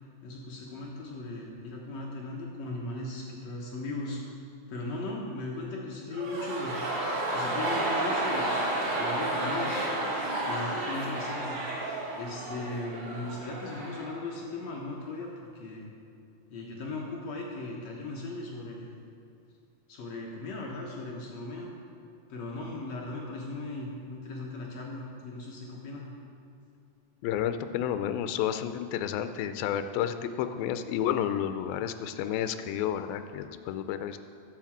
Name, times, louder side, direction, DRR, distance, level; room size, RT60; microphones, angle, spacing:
voice 1, 0.0-4.2 4.7-6.8 7.3-9.8 10.5-11.6 12.1-15.9 16.5-18.9 19.9-21.7 22.3-26.1, left 2 dB, 65° left, -2 dB, 1.8 m, -38 dB
sound 1, 6.1-14.2 14.4-14.5, right 1 dB, 50° right, 2.0 m, -31 dB
voice 2, 27.2-34.2, left 10 dB, 85° left, 9 dB, 2.3 m, -31 dB
10.5 x 5.9 x 7.3 m, 2.6 s
omnidirectional pair, 4.2 m